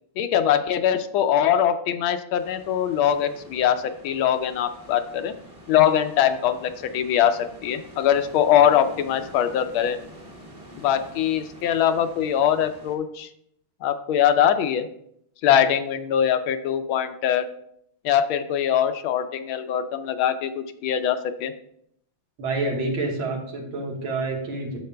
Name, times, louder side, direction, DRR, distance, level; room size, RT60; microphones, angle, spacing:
voice 1, 0.2-5.3 5.7-10.0 10.7-13.3 13.8-14.9 15.4-17.5 18.0-21.5, left 9 dB, 80° left, 9 dB, 1.4 m, -22 dB
sound 1, 2.3-12.9, equal, 20° right, 1.0 m, -46 dB
voice 2, 22.4-24.8, right 2 dB, 75° right, 0 dB, 2.2 m, -28 dB
10.5 x 7.2 x 2.2 m, 0.72 s
omnidirectional pair, 2.3 m